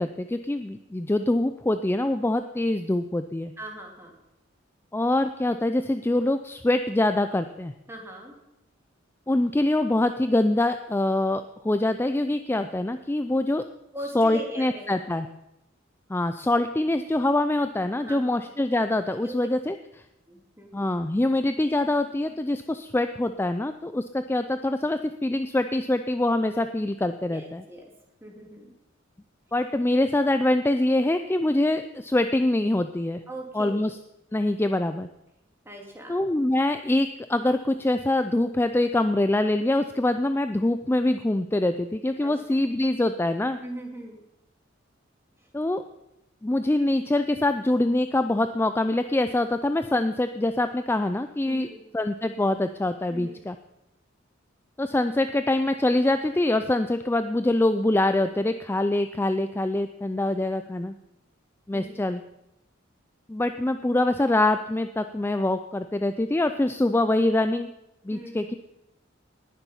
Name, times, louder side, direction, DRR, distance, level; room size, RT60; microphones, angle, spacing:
voice 1, 0.0-3.5 4.9-7.7 9.3-13.6 14.1-15.3 16.1-20.0 20.7-27.6 29.5-33.2 33.5-33.9 34.3-35.1 36.1-43.6 45.5-45.8 46.4-51.7 51.9-53.6 54.8-60.9 61.7-62.2 63.3-67.7 68.0-68.5, left 1 dB, 10° left, 9 dB, 0.4 m, -24 dB
voice 2, 3.6-4.1 7.9-8.4 13.9-15.2 18.0-18.5 19.2-19.5 20.3-20.9 27.3-27.8 28.2-28.7 33.3-33.8 35.6-36.2 42.2-42.7 43.6-44.2 51.5-51.8 53.1-53.4 61.7-62.0 68.1-68.5, right 1 dB, 15° right, 0 dB, 2.5 m, -40 dB
19.0 x 7.1 x 5.5 m, 0.88 s
head